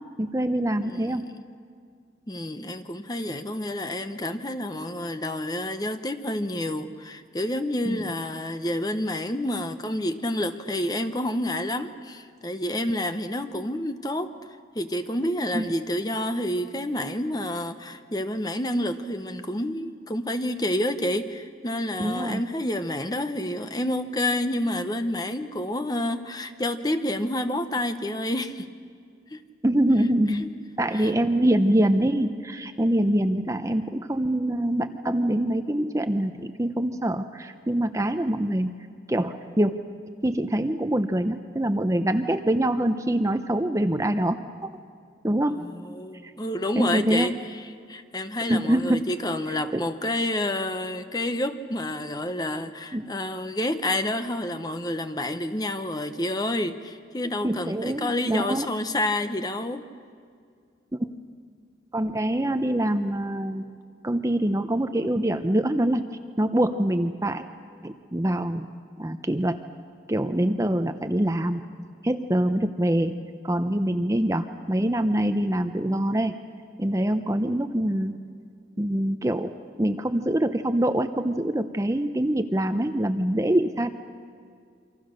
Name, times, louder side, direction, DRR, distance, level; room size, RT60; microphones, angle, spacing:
voice 1, 0.2-1.2 7.9-8.1 15.5-15.6 22.0-22.4 29.6-30.5 30.8-38.8 39.1-39.7 40.2-44.7 45.2-45.6 46.2-46.3 46.7-47.4 48.5-49.1 49.7-49.9 52.9-53.1 57.4-58.7 60.9-61.2 61.9-63.7 64.0-66.0 66.4-67.5 67.8-68.7 69.0-69.6 70.1-71.6 72.0-73.1 73.4-76.3 76.8-78.2 78.8-83.9, right 1 dB, 20° right, 9 dB, 0.7 m, -24 dB
voice 2, 0.8-1.4 2.3-14.3 14.7-28.7 29.3-29.4 30.4-30.5 30.9-31.1 45.5-47.3 47.9-59.9, left 1 dB, 20° left, 9 dB, 1.0 m, -29 dB
28.0 x 25.0 x 6.6 m, 2.2 s
head